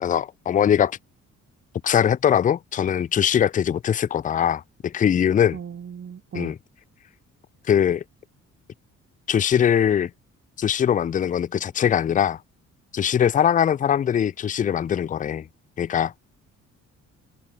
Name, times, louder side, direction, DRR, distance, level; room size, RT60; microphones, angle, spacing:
voice 1, 0.0-1.0 1.8-5.6 6.3-6.6 7.7-8.0 9.3-10.1 10.6-12.4 12.9-15.5 15.8-16.1, left 9 dB, 25° left, 0.4 m, -21 dB
voice 2, 5.5-6.5, right 7 dB, 45° right, 2.2 m, -37 dB
cardioid pair, 90°, 30 cm